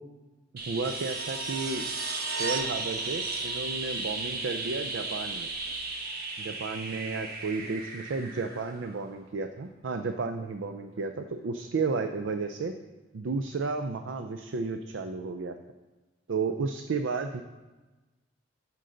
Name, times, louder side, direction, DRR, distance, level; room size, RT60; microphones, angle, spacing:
sound 1, 0.6-9.2 11.6-11.7, right 3 dB, 55° right, 1.1 m, -35 dB
voice 1, 0.7-1.8 2.4-5.5 6.4-12.7 13.1-15.5 16.3-17.4, right 4 dB, 85° right, 7 dB, 0.5 m, -32 dB
14.0 x 5.3 x 3.9 m, 1.2 s
head